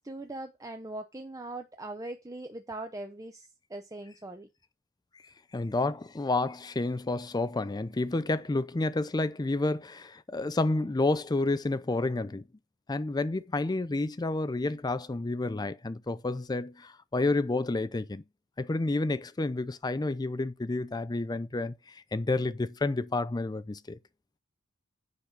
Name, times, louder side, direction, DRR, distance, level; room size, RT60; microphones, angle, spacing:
voice 1, 0.0-4.5, right 2 dB, 15° right, 0.8 m, -41 dB
voice 2, 5.5-12.4 12.9-18.2 18.6-24.0, left 2 dB, 20° left, 0.4 m, -30 dB
10.0 x 4.1 x 6.7 m
head